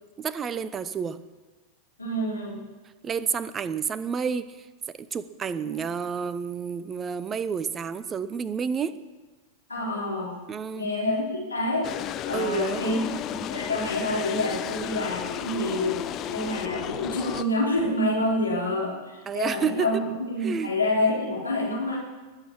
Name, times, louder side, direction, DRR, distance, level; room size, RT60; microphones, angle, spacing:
voice 1, 0.2-1.2 3.0-4.7 5.0-9.0 10.5-10.9 12.3-13.2 19.3-19.9 20.4-20.7, right 6 dB, 20° right, 15 dB, 0.8 m, -30 dB
voice 2, 2.0-2.6 5.6-5.7 9.7-10.4 10.7-11.9 12.2-13.0 13.3-16.0 16.3-22.0, left 1 dB, 80° left, -4 dB, 4.1 m, -27 dB
sound 1, 11.8-17.5, left 11 dB, 35° left, 0.7 m, -33 dB
20.5 x 8.6 x 7.4 m, 1.3 s
figure-of-eight pair, 90°, 0 cm